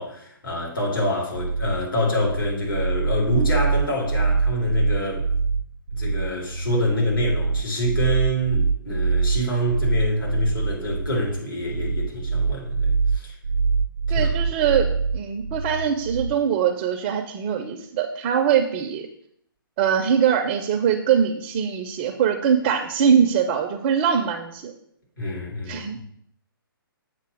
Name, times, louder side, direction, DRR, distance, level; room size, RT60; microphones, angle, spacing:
voice 1, 0.0-5.3 5.9-13.3 14.1-14.3 25.2-26.0, left 1 dB, 65° left, -2 dB, 2.6 m, -26 dB
sound 1, 1.3-16.4, right 4 dB, 80° right, 0.5 m, -24 dB
voice 2, 14.1-14.9 15.1-19.1 19.8-24.7 25.7-26.0, right 8 dB, 25° right, 6 dB, 0.4 m, -22 dB
7.6 x 2.8 x 6.1 m, 0.69 s
figure-of-eight pair, 130°, 12 cm